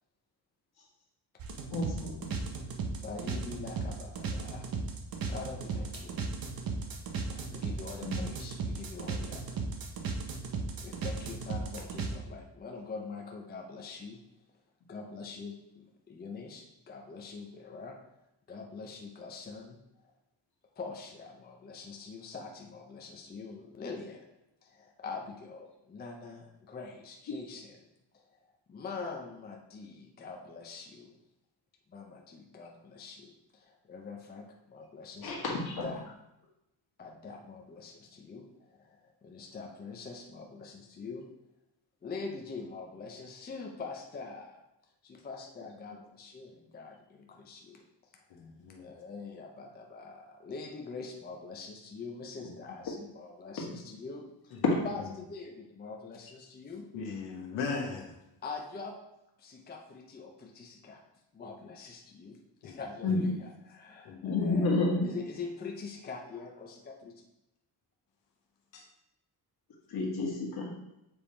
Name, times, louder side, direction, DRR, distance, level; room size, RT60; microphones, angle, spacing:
sound 1, 1.4-12.1, right 4 dB, 55° right, 0.8 m, -35 dB
voice 1, 1.7-2.4 8.0-8.2 27.3-27.4 35.2-35.9 53.7-53.8 54.6-54.8 63.0-63.2 64.2-65.1 69.9-70.7, left 3 dB, 60° left, -2 dB, 1.7 m, -30 dB
voice 2, 3.0-4.7 5.3-6.3 7.3-9.6 10.8-14.2 14.9-18.0 18.5-19.8 20.0-20.1 20.8-24.2 24.6-27.8 28.1-28.4 28.7-31.1 31.9-35.5 35.8-36.0 37.0-41.3 42.0-44.6 45.0-45.9 46.3-47.8 48.8-56.9 58.4-59.0 59.4-61.0 61.3-67.2, left 4 dB, 25° left, 1 dB, 0.5 m, -44 dB
voice 3, 48.3-48.9 56.9-58.1 62.6-62.8 63.1-63.2 64.0-64.2 68.7-68.9, left 4 dB, 80° left, 1 dB, 1.1 m, -37 dB
7.1 x 3.5 x 4.3 m, 0.89 s
wide cardioid pair, 160°, 43 cm